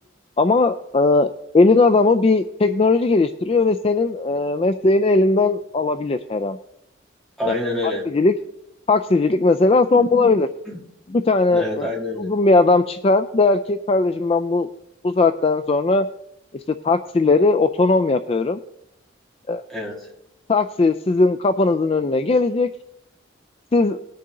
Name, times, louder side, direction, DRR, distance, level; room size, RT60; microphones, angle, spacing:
voice 1, 0.4-1.3 1.5-6.6 7.5-7.6 8.1-8.3 8.9-10.5 11.1-11.9 12.2-14.7 15.0-16.1 16.8-18.6 19.5-19.6 20.5-22.7 23.7-24.0, left 3 dB, 30° left, 10 dB, 0.3 m, -18 dB
voice 2, 7.4-8.1 9.9-10.1 10.7-10.8 11.5-12.3 19.7-20.1, left 1 dB, ahead, -2 dB, 2.4 m, -27 dB
20.0 x 6.7 x 3.8 m, 0.81 s
head